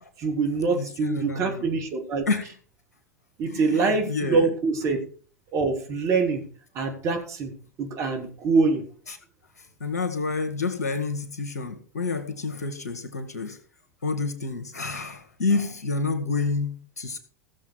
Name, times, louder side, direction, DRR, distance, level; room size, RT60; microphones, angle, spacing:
voice 1, 0.2-2.3 3.4-5.0 5.5-6.4 6.7-7.5 7.8-8.8, right 4 dB, 35° right, 3 dB, 3.0 m, -24 dB
voice 2, 0.8-1.7 2.3-2.5 3.4-4.5 9.1-9.2 9.8-13.6 14.0-17.2, left 4 dB, 75° left, 7 dB, 2.1 m, -29 dB
16.5 x 7.3 x 4.6 m, 0.43 s
figure-of-eight pair, 85°, 9 cm